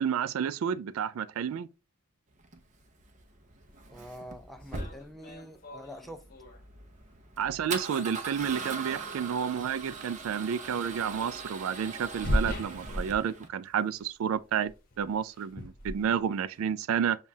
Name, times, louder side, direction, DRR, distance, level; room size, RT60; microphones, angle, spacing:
voice 1, 0.0-1.7 7.4-14.7 15.0-17.2, right 8 dB, 70° right, 0.3 m, -30 dB
Male speech man speaking / Car / Engine starting, 2.4-13.5, right 4 dB, 35° right, 0.7 m, -41 dB
voice 2, 3.9-6.2, equal, ahead, 0.4 m, -45 dB
sound 1, 4.1-4.2 4.6-6.6 7.7-7.8 9.6-9.9 10.2-10.3 11.9-13.7 14.0-14.3 14.6-16.6, left 1 dB, 40° left, 0.9 m, -36 dB
7.1 x 2.4 x 2.7 m
head